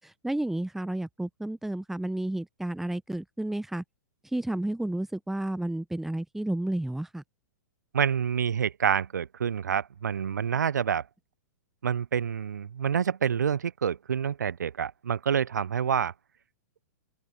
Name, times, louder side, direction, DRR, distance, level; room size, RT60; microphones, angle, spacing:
voice 1, 0.2-3.8 4.3-7.2, right 1 dB, 5° right, 0.9 m, -31 dB
voice 2, 7.9-11.0 11.8-16.1, right 8 dB, 75° right, 0.4 m, -27 dB
figure-of-eight pair, 110°, 10 cm